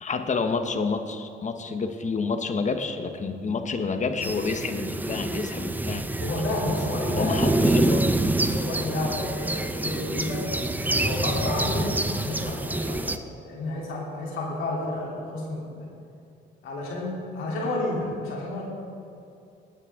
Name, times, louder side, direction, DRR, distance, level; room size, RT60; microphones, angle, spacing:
voice 1, 0.0-6.0 7.1-8.1, left 4 dB, 35° left, 7 dB, 1.1 m, -28 dB
sound 1, 4.2-13.2, right 2 dB, 10° right, 0.6 m, -26 dB
voice 2, 6.2-7.4 8.4-10.5 10.9-13.0 13.4-15.9 16.6-18.6, left 2 dB, 85° left, -3 dB, 3.1 m, -31 dB
18.5 x 9.1 x 3.7 m, 2.6 s
cardioid pair, 90°, 20 cm